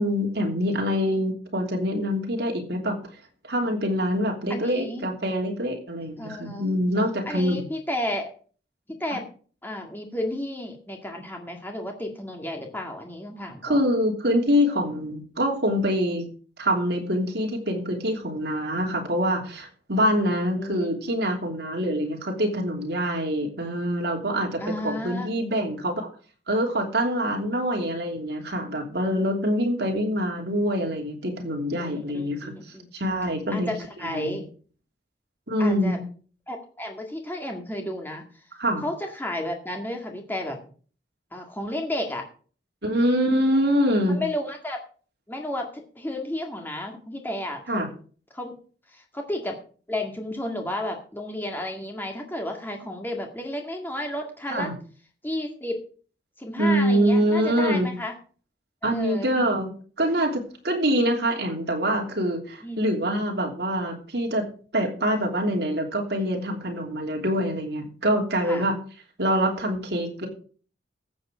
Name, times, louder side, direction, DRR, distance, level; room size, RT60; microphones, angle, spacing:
voice 1, 0.0-3.0 3.4-7.6 13.6-16.3 16.6-26.1 26.5-32.5 32.9-33.7 34.1-34.4 35.5-36.0 38.6-38.8 42.8-44.2 47.7-47.9 54.5-54.7 56.6-57.9 58.8-59.7 60.0-64.5 64.7-68.8 69.2-70.3, equal, 60° right, 1 dB, 3.1 m, -25 dB
voice 2, 4.5-5.1 6.2-6.7 7.3-8.3 8.9-9.3 9.6-13.8 20.6-21.2 24.6-25.3 27.3-27.4 31.7-32.9 33.5-34.5 35.6-36.0 36.5-38.2 38.8-40.6 41.3-42.3 44.1-44.8 45.3-47.8 48.3-48.6 48.9-49.6 49.9-54.7 55.2-55.8 56.4-58.1 58.9-59.3 62.6-62.9 68.5-68.7, left 1 dB, 10° left, 2 dB, 2.0 m, -32 dB
14.5 x 7.9 x 5.0 m, 0.41 s
head